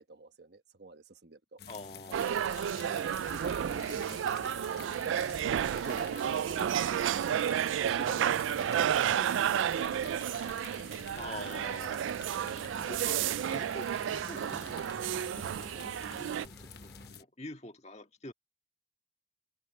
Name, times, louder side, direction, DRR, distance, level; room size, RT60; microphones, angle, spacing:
voice 1, 0.0-1.6 3.0-4.8 5.5-10.5, right 2 dB, 60° right, 1.2 m, -49 dB
sound 1, 1.6-17.2, left 6 dB, 55° left, 1.2 m, -49 dB
voice 2, 1.7-2.3 2.8-3.2 6.0-6.6 11.1-12.1 12.8-14.9 15.3-15.9 16.2-18.3, left 2 dB, 35° left, 1.8 m, -47 dB
sound 2, 2.1-16.5, right 9 dB, 85° right, 0.3 m, -31 dB
sound 3, 3.7-17.1, equal, 10° left, 2.8 m, -56 dB
head